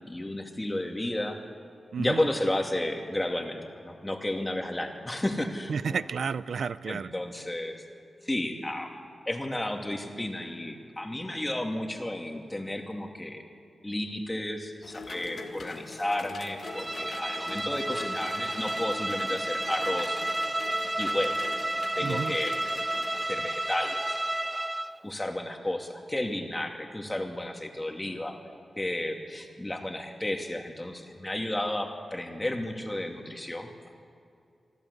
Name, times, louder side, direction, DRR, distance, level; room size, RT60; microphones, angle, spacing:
voice 1, 0.1-1.4 2.0-6.0 6.9-7.8 8.2-8.9 9.3-13.4 13.8-20.2 21.0-21.4 21.9-22.6 23.1-24.2 24.5-28.4 28.8-33.9, left 1 dB, 20° left, 3 dB, 2.5 m, -32 dB
voice 2, 1.9-2.3 5.7-7.1 22.0-22.4, right 6 dB, 75° right, 16 dB, 0.5 m, -31 dB
sound 1, 14.8-23.2, left 4 dB, 70° left, 1.4 m, -43 dB
Bowed string instrument, 16.6-25.0, right 1 dB, 15° right, 0.4 m, -31 dB
26.0 x 12.5 x 8.4 m, 2.5 s
cardioid pair, 65°, 0 cm